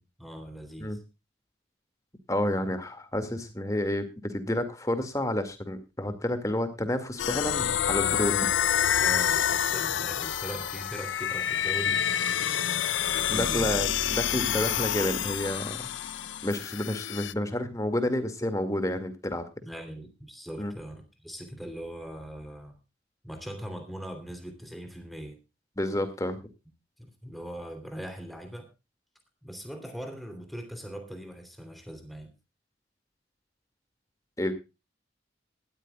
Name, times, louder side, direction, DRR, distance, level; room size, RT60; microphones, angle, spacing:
voice 1, 0.2-1.0 9.0-13.8 19.6-22.8 23.2-25.4 27.0-28.7 29.4-32.3, equal, ahead, 6 dB, 3.2 m, -41 dB
voice 2, 2.3-8.5 13.3-15.9 16.4-19.4 20.6-20.7 25.8-26.4 34.4-34.5, left 1 dB, 15° left, 9 dB, 2.1 m, -30 dB
sound 1, 7.2-17.3, left 9 dB, 85° left, 0.6 m, -28 dB
19.0 x 13.0 x 2.4 m, 0.27 s
head